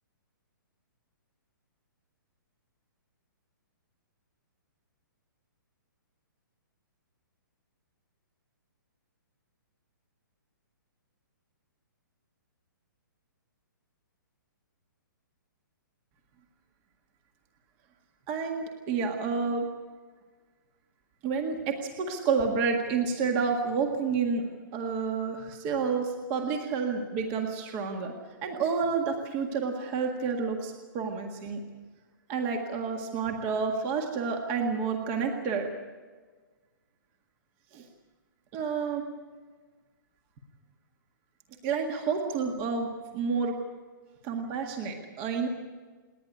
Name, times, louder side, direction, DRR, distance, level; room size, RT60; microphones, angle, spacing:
voice 1, 18.3-19.7 21.2-24.4 24.7-28.1 28.4-31.6 32.3-35.7 37.7-37.8 38.5-39.0 41.6-43.6 44.2-45.5, right 5 dB, 20° right, 3 dB, 1.8 m, -29 dB
28.0 x 10.5 x 9.6 m, 1.4 s
hypercardioid pair, 170°, 11 cm